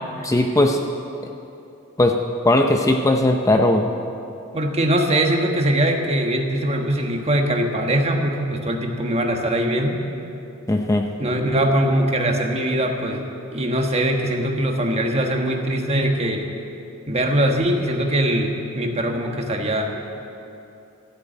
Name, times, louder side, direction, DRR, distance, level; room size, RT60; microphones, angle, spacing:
voice 1, 0.2-0.8 2.0-2.1 2.4-3.9 10.7-11.0, left 1 dB, 15° left, 4 dB, 0.6 m, -18 dB
voice 2, 4.5-10.0 11.2-13.3 13.5-16.4 17.1-20.0, right 1 dB, 30° right, 3 dB, 1.3 m, -21 dB
14.0 x 8.3 x 9.1 m, 2.7 s
head